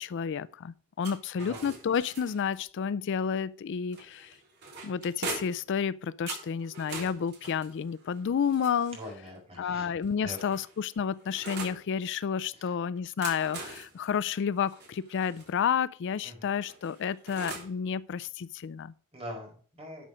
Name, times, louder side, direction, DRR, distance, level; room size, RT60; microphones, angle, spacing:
voice 1, 0.0-4.4 4.8-9.0 9.6-18.9, left 7 dB, 55° left, 0.4 m, -31 dB
sound 1, 1.0-2.6 3.9-5.7 6.3-9.2 10.0-11.8 13.0-15.5 16.6-17.8, right 3 dB, 50° right, 3.4 m, -42 dB
voice 2, 1.4-1.7 8.9-9.9 10.2-10.6 12.6-12.7 16.2-16.5 19.1-20.1, equal, 30° right, 4.6 m, -43 dB
12.0 x 6.2 x 5.0 m
head